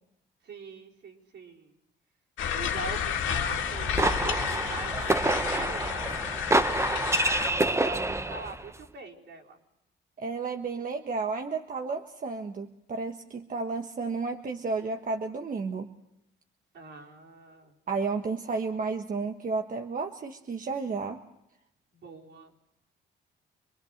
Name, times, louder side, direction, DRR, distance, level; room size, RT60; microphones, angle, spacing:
voice 1, 0.4-1.7 2.5-7.1 7.5-9.6 16.7-17.7 21.9-22.6, right 4 dB, 65° right, -2 dB, 4.7 m, -44 dB
sound 1, 2.4-7.5, left 8 dB, 80° left, 2.2 m, -31 dB
sound 2, 3.6-8.6, right 2 dB, 15° right, 1.0 m, -27 dB
voice 2, 10.2-15.9 17.9-21.2, right 4 dB, 45° right, 4 dB, 1.4 m, -32 dB
26.5 x 21.5 x 6.6 m, 0.84 s
cardioid pair, 90°, 20 cm